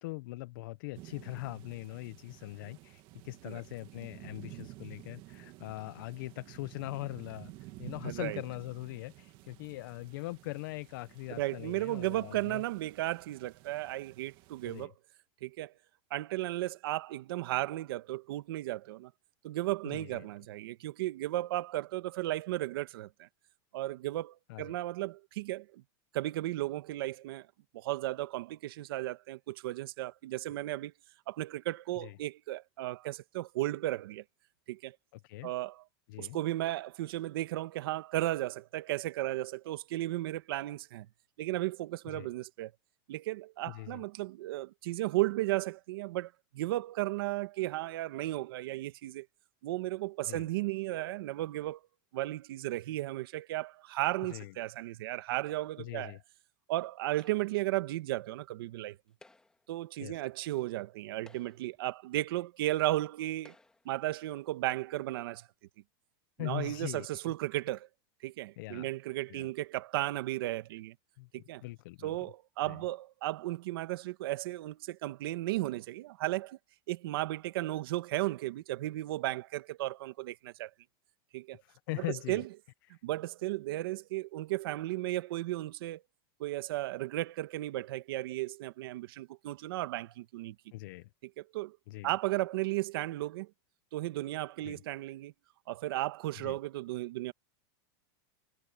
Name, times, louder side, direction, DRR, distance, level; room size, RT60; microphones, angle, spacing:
voice 1, 0.0-12.6 14.6-14.9 19.8-20.3 24.5-24.7 32.0-32.2 35.2-35.5 36.1-36.4 42.1-42.3 43.7-44.0 50.3-50.5 54.2-54.5 55.8-56.2 60.0-60.2 66.4-67.3 68.6-68.9 69.3-69.5 71.2-71.3 71.6-72.1 72.6-72.8 81.6-82.4 82.9-83.0 90.7-91.1 91.9-92.1 94.6-94.8 96.4-96.6, left 20 dB, 55° left, 0.7 m, -41 dB
sound 1, 0.9-14.9, right 18 dB, 35° right, 1.7 m, -52 dB
voice 2, 8.0-8.4 11.3-14.9 15.4-15.7 16.1-19.1 19.4-23.3 23.7-25.8 26.1-27.5 27.7-30.9 31.3-34.2 34.7-35.0 35.4-35.8 36.2-41.1 41.4-42.7 43.1-49.3 49.6-51.8 52.1-56.2 56.7-59.0 59.7-63.5 63.8-65.5 66.4-67.9 68.2-70.9 71.3-71.6 72.0-76.6 76.9-80.7 81.3-81.6 82.0-82.4 83.0-86.0 86.4-90.5 91.5-91.8 92.0-93.5 93.9-95.3 95.7-97.3, right 16 dB, 65° right, 1.4 m, -35 dB
sound 2, 57.2-57.7 59.1-59.7 60.6-60.7 61.1-61.8 62.7-62.8 63.4-64.0, left 2 dB, 5° left, 2.0 m, -60 dB
supercardioid pair, 165°, 13 cm